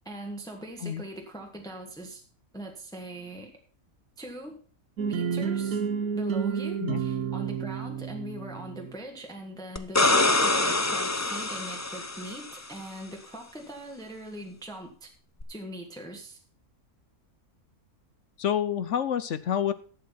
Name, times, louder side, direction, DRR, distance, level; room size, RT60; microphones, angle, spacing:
voice 1, 0.0-2.2 2.5-3.5 4.2-4.6 5.0-5.8 6.1-15.1 15.5-16.4, right 1 dB, 5° left, 2 dB, 1.5 m, -41 dB
sound 1, 5.0-8.9, right 7 dB, 75° right, 1.5 m, -30 dB
sound 2, 9.8-12.6 15.4-15.5, left 2 dB, 20° left, 0.4 m, -25 dB
voice 2, 18.4-19.7, left 9 dB, 60° left, 14 dB, 0.9 m, -28 dB
11.5 x 7.6 x 5.7 m, 0.41 s
omnidirectional pair, 1.6 m